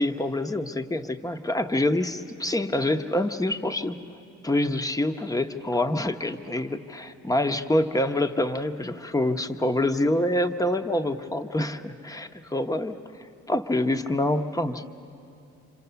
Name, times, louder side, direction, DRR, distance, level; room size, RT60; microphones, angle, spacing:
voice 1, 0.0-4.0 4.4-13.0 13.5-14.9, left 1 dB, 10° left, 8 dB, 0.9 m, -26 dB
27.0 x 26.5 x 6.9 m, 2.7 s
cardioid pair, 90°, 30 cm